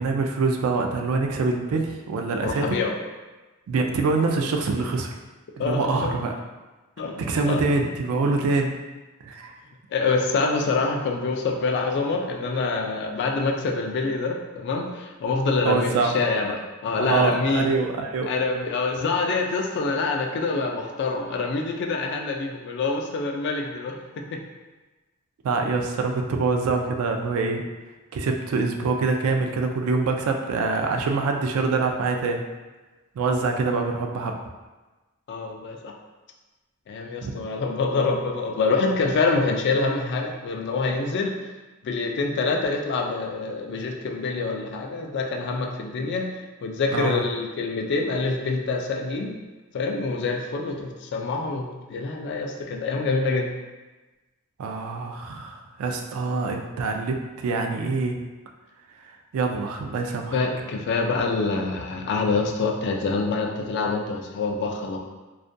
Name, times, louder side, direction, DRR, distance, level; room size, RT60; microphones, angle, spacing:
voice 1, 0.0-2.8 3.7-5.1 5.6-6.3 7.2-8.7 9.2-9.5 15.6-16.2 16.9-18.3 25.4-27.6 28.1-32.4 33.2-34.4 37.2-37.3 46.9-47.2 54.6-58.2 59.0-60.4, right 3 dB, 70° right, 3 dB, 0.3 m, -25 dB
voice 2, 2.4-2.9 5.6-6.1 7.0-7.6 9.9-17.7 18.3-24.4 35.3-35.9 36.9-41.3 41.8-46.3 46.6-49.4 49.7-53.5 60.3-65.0, left 3 dB, 55° left, 2 dB, 0.3 m, -26 dB
2.3 x 2.1 x 2.5 m, 1.2 s
head